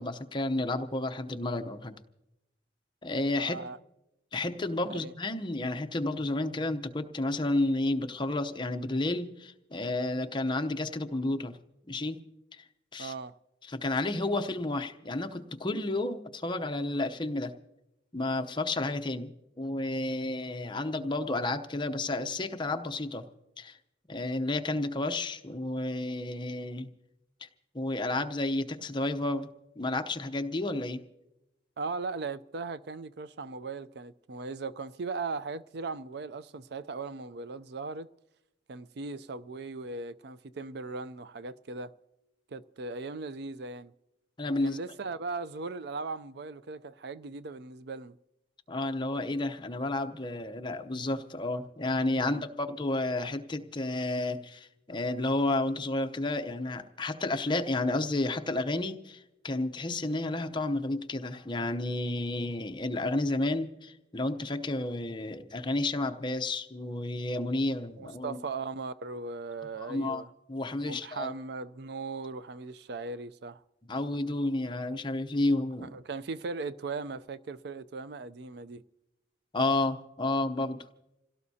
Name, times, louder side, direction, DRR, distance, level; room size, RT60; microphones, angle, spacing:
voice 1, 0.0-1.9 3.0-3.6 4.3-11.6 11.9-12.2 12.5-12.6 12.9-13.1 13.7-17.5 18.1-23.2 23.6-23.8 24.1-26.9 27.4-27.5 27.7-29.5 29.8-31.0 44.4-44.8 48.7-68.4 69.8-70.2 70.5-71.3 73.9-75.9 79.5-80.9, left 2 dB, 25° left, 0.7 m, -31 dB
voice 2, 3.3-3.8 4.9-5.1 13.0-13.4 31.8-38.1 38.7-41.9 42.5-43.9 44.6-48.2 52.2-52.4 68.0-70.3 70.8-73.6 75.8-78.8, right 4 dB, 60° right, 0.5 m, -38 dB
27.5 x 17.0 x 2.8 m
head